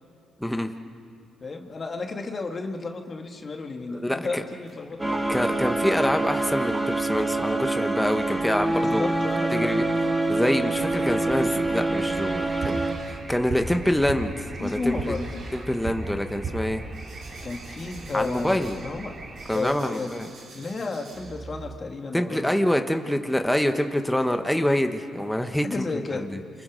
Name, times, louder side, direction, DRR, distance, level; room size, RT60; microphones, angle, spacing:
voice 1, 0.4-0.7 4.0-4.4 5.3-9.1 9.5-9.8 10.3-12.8 13.0-14.9 15.5-16.8 18.1-18.8 19.5-20.3 22.1-25.9 26.1-26.4, left 1 dB, 5° left, 6 dB, 1.2 m, -26 dB
voice 2, 1.4-5.4 8.7-9.9 14.6-15.4 17.4-19.1 19.5-20.1 20.5-22.5 25.6-26.3, left 3 dB, 35° left, 3 dB, 2.4 m, -32 dB
sound 1, 4.6-7.5 7.8-7.9 8.2-8.3 9.1-9.9 10.2-10.9 11.2-21.8, right 3 dB, 65° right, 4.7 m, -40 dB
sound 2, 5.0-12.9, right 2 dB, 15° right, 2.1 m, -26 dB
sound 3, 10.7-19.6, right 2 dB, 35° right, 2.6 m, -41 dB
29.0 x 25.5 x 5.3 m, 2.3 s
cardioid pair, 90°, 0 cm